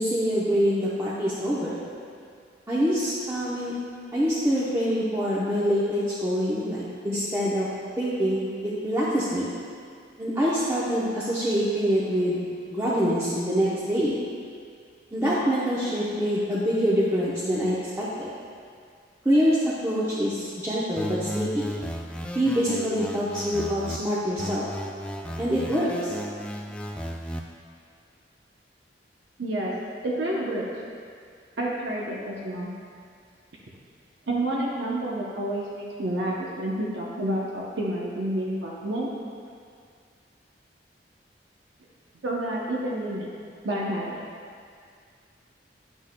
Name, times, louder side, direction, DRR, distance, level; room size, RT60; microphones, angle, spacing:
voice 1, 0.0-1.7 2.7-3.7 4.1-7.7 8.0-9.5 10.2-12.4 12.7-14.1 15.1-18.3 19.2-21.6 22.3-24.7 25.4-26.1, equal, 15° right, -9 dB, 0.7 m, -25 dB
sound 1, 21.0-24.0 24.4-27.4, equal, 5° left, 0.3 m, -34 dB
voice 2, 29.4-29.7 30.0-30.7 31.6-32.7 34.3-39.1 42.2-43.3 43.6-44.2, right 1 dB, 75° right, -4 dB, 0.7 m, -29 dB
10.0 x 6.1 x 2.2 m, 2.2 s
head